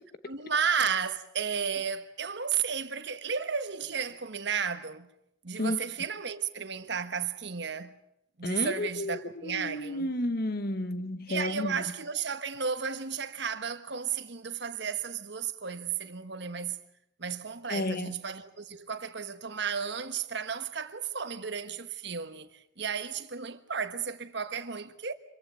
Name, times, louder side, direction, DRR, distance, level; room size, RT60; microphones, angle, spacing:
voice 1, 0.2-5.1 5.4-7.9 8.4-10.1 11.3-16.8 17.2-25.1, right 6 dB, 60° right, 1.4 m, -33 dB
voice 2, 8.4-11.8 17.7-18.2, left 1 dB, 50° left, 1.1 m, -32 dB
26.0 x 15.5 x 8.9 m
head